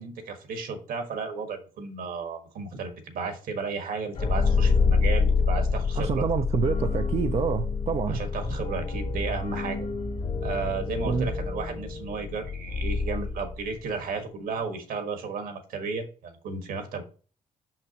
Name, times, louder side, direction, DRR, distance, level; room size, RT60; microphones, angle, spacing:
voice 1, 0.0-6.2 8.1-9.9 10.4-17.0, right 4 dB, 75° right, 1.5 m, -33 dB
sound 1, 4.1-13.8, left 4 dB, 65° left, 2.0 m, -27 dB
voice 2, 5.9-8.2 11.0-11.3, right 6 dB, 45° right, 0.6 m, -27 dB
5.8 x 5.7 x 2.9 m
supercardioid pair, 70°, 15 cm